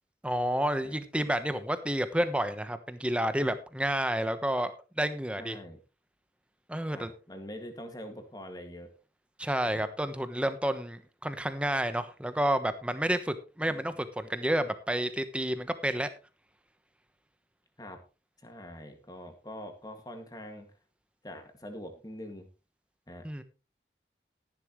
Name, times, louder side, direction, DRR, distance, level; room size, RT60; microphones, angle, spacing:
voice 1, 0.2-5.6 6.7-7.1 9.4-16.1 23.2-23.4, right 1 dB, 5° right, 10 dB, 1.1 m, -30 dB
voice 2, 5.4-5.8 6.9-8.9 17.8-18.0 18.4-20.7 21.2-22.5 23.1-23.2, equal, 20° left, 5 dB, 2.2 m, -44 dB
14.0 x 11.0 x 3.2 m, 0.31 s
head